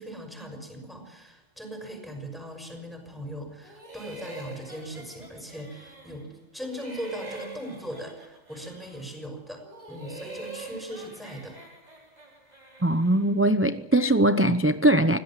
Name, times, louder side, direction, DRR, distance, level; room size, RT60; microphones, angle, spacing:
voice 1, 0.0-9.6 9.9-11.6, equal, ahead, 6.1 m, -39 dB
sound 1, 3.6-6.3 6.6-9.2 9.6-13.4, right 2 dB, 30° right, 4.5 m, -44 dB
voice 2, 12.8-15.2, right 1 dB, 15° right, 0.5 m, -21 dB
25.0 x 16.5 x 7.5 m
omnidirectional pair, 1.3 m